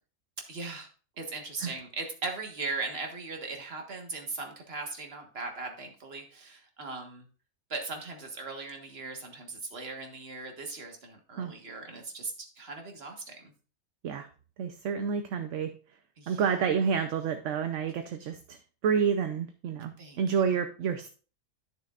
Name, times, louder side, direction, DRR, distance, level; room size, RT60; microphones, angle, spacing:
voice 1, 0.5-0.9 1.2-7.3 7.7-13.5 16.2-16.4 20.0-20.2, right 3 dB, 50° right, 3 dB, 1.7 m, -39 dB
voice 2, 14.6-15.7 16.3-21.1, right 6 dB, 70° right, 7 dB, 1.0 m, -29 dB
11.5 x 6.7 x 2.4 m, 0.37 s
omnidirectional pair, 1.4 m